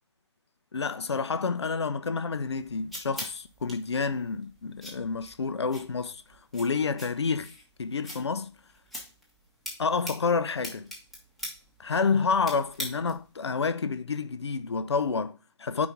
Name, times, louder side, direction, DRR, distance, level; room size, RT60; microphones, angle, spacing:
voice 1, 0.7-6.2 6.5-7.5 7.8-8.5 9.8-10.9 11.8-15.9, left 5 dB, 65° left, 0.6 m, -29 dB
sound 1, 2.3-13.4, left 1 dB, ahead, 0.9 m, -43 dB
4.8 x 3.9 x 5.8 m
figure-of-eight pair, 145°, 15 cm